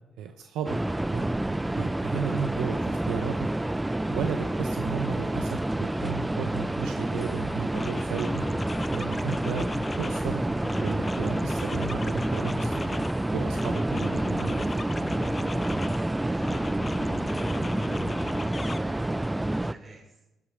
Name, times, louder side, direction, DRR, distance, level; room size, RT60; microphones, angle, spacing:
voice 1, 0.2-0.8 1.1-3.3 4.1-8.5 8.9-10.4 10.8-13.0 13.3-14.8, right 7 dB, 85° right, 5 dB, 0.7 m, -34 dB
sound 1, 0.6-19.7, right 1 dB, 10° right, 0.4 m, -28 dB
sound 2, 7.2-7.4 7.7-10.3 10.6-13.2 13.5-16.1 16.4-18.8, left 3 dB, 30° left, 0.7 m, -37 dB
voice 2, 16.0-20.3, right 2 dB, 45° right, -1 dB, 5.3 m, -46 dB
12.0 x 8.8 x 5.0 m, 0.97 s
supercardioid pair, 65°, 0 cm